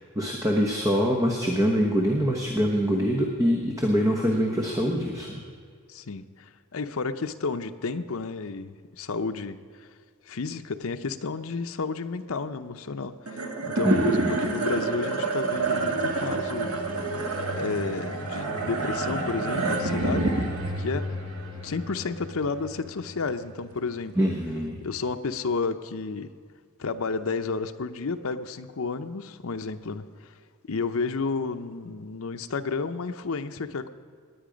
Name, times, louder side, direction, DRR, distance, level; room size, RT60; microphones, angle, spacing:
voice 1, 0.1-5.4 13.8-14.3 24.1-24.8, equal, 15° right, 1 dB, 1.0 m, -24 dB
voice 2, 5.9-9.9 10.3-16.8 17.5-20.4 20.8-21.1 21.6-24.3 24.8-26.3 26.8-30.1 30.7-33.9, left 4 dB, 70° left, 8 dB, 0.6 m, -31 dB
sound 1, 13.3-23.8, right 2 dB, 80° right, 1.6 m, -29 dB
19.0 x 9.8 x 5.1 m, 2.1 s
head